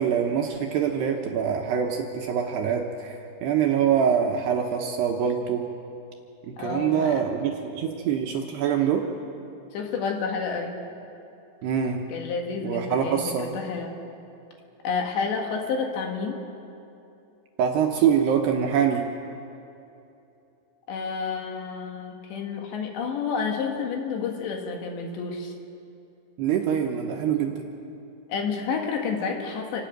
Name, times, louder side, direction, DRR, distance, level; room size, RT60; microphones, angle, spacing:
voice 1, 0.0-5.7 6.6-9.0 11.6-12.0 12.6-13.5 17.6-19.0 26.4-27.6, right 8 dB, 75° right, 2 dB, 2.7 m, -24 dB
voice 2, 6.6-7.2 9.7-10.8 12.1-14.0 14.8-16.4 20.9-25.5 28.3-29.8, left 5 dB, 65° left, 2 dB, 3.7 m, -30 dB
28.0 x 12.5 x 9.0 m, 2.7 s
omnidirectional pair, 5.7 m